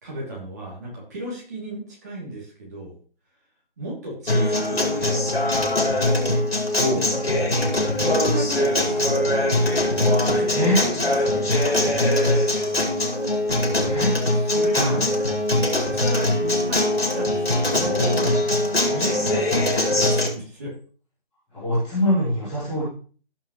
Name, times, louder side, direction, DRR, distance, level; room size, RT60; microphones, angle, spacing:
voice 1, 0.0-2.9 3.8-5.2 7.1-9.3 10.0-11.9 13.5-14.0 14.3-15.1 15.9-18.3 18.9-20.7, right 1 dB, 15° right, -4 dB, 3.0 m, -35 dB
Acoustic guitar, 4.3-20.3, left 1 dB, 85° left, 5.1 m, -22 dB
voice 2, 6.7-7.1 10.5-10.8 13.8-14.2 14.7-15.0 21.5-22.8, left 1 dB, ahead, -16 dB, 1.2 m, -23 dB
16.5 x 5.9 x 3.2 m, 0.40 s
figure-of-eight pair, 170°, 30 cm